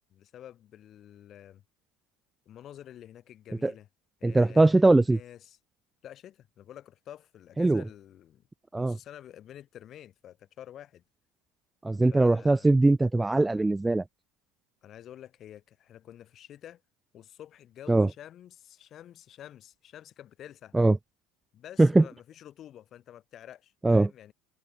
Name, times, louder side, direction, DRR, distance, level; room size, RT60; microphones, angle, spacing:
voice 1, 0.1-1.6 2.5-3.9 4.2-5.6 6.0-8.4 8.7-11.0 12.1-12.8 14.8-16.8 17.1-20.7 21.5-24.3, left 11 dB, 45° left, 7.8 m, -49 dB
voice 2, 4.2-5.2 7.6-7.8 8.7-9.0 11.8-14.0 17.9-18.1 20.7-21.0 21.8-22.0 23.8-24.1, right 2 dB, 10° right, 0.3 m, -21 dB
hypercardioid pair, 70°, 0 cm